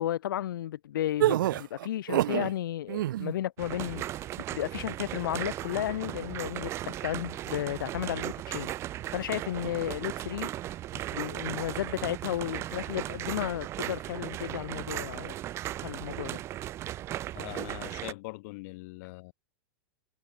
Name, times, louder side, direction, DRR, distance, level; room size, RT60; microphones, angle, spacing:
voice 1, 0.0-10.5 11.1-16.4, left 12 dB, 80° left, 1.9 m, -34 dB
sound 1, 1.2-2.5 2.9-3.3, right 13 dB, 75° right, 0.5 m, -26 dB
sound 2, 3.6-18.1, right 13 dB, 25° right, 0.9 m, -37 dB
voice 2, 17.3-19.3, left 24 dB, 50° left, 6.1 m, -42 dB
supercardioid pair, 160°, 11 cm